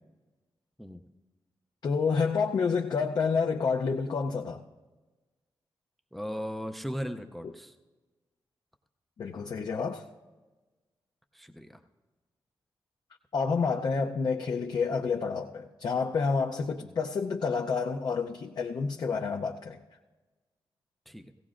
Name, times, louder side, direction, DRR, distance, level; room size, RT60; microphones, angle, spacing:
voice 1, 1.8-4.6 7.4-7.5 9.2-10.0 13.3-19.8, left 5 dB, 50° left, 1 dB, 0.6 m, -29 dB
voice 2, 6.1-7.7 11.3-11.8 16.8-17.0 21.1-21.3, equal, ahead, 6 dB, 0.4 m, -37 dB
17.0 x 17.0 x 2.5 m, 1.2 s
wide cardioid pair, 165°, 9 cm